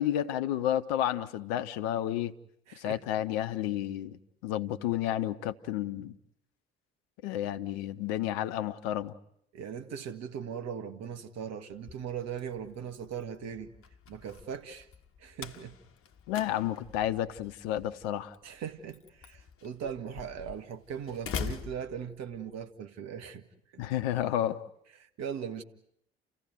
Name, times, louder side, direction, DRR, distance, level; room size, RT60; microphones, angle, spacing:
voice 1, 0.0-2.3 2.8-4.2 4.4-6.1 7.2-9.1 16.3-18.3 23.8-24.6, left 12 dB, 70° left, 0.9 m, -31 dB
voice 2, 2.7-3.0 9.5-13.7 14.1-14.9 15.2-15.7 18.4-23.4 23.7-23.8 25.0-25.6, right 7 dB, 55° right, 1.8 m, -39 dB
Slam, 11.7-22.6, left 6 dB, 45° left, 1.4 m, -44 dB
30.0 x 15.5 x 9.3 m
figure-of-eight pair, 50°, 31 cm